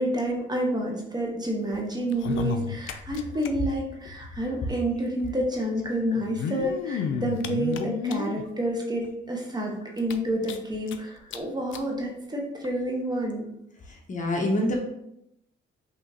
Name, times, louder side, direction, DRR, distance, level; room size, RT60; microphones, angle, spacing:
voice 1, 0.0-13.5, right 1 dB, 20° right, -1 dB, 1.1 m, -29 dB
sound 1, 2.1-3.5 3.8-3.9 4.1-4.2 5.2-5.3 6.2-8.5 9.0-9.1 9.5-9.6 10.0-11.0 11.3-11.4 11.7-11.9 12.6-12.7, left 8 dB, 75° left, 0.4 m, -31 dB
voice 2, 4.3-4.7 13.9-14.8, left 1 dB, 40° left, 1 dB, 0.9 m, -27 dB
5.7 x 2.8 x 2.8 m, 0.79 s
cardioid pair, 90°, 20 cm